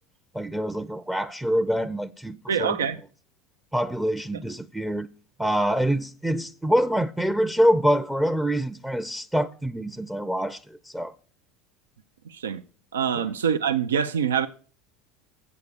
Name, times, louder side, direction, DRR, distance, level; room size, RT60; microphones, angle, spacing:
voice 1, 0.3-2.8 3.7-5.1 5.4-11.1 13.2-13.3, equal, 5° right, 0.5 m, -25 dB
voice 2, 2.5-3.0 12.3-12.6 12.9-14.5, right 7 dB, 90° right, 0.4 m, -25 dB
8.5 x 4.8 x 6.7 m
hypercardioid pair, 80°, 0 cm